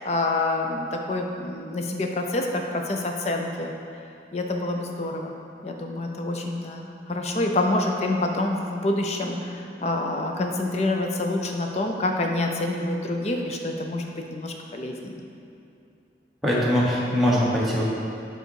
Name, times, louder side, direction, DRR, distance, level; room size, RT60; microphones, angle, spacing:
voice 1, 0.0-3.7 4.3-5.3 5.6-15.2, left 2 dB, 35° left, 2 dB, 0.5 m, -27 dB
voice 2, 16.4-17.9, equal, ahead, -8 dB, 1.0 m, -22 dB
6.6 x 3.9 x 4.6 m, 2.7 s
head